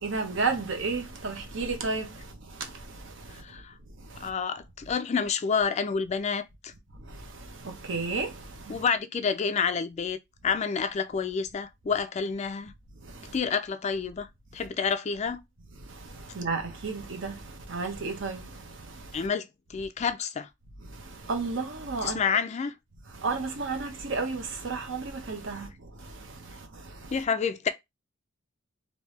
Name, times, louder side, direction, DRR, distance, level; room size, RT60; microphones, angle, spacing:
voice 1, 0.0-3.4 4.0-4.3 7.0-8.8 13.0-13.4 15.8-19.3 20.9-22.2 23.1-27.1, right 4 dB, 70° right, 1.0 m, -33 dB
voice 2, 3.4-3.7 4.2-6.7 8.7-10.2 10.4-12.7 13.3-14.3 14.5-15.4 19.1-20.5 22.0-22.7 27.1-27.7, left 6 dB, 35° left, 0.3 m, -29 dB
3.3 x 2.7 x 3.1 m
head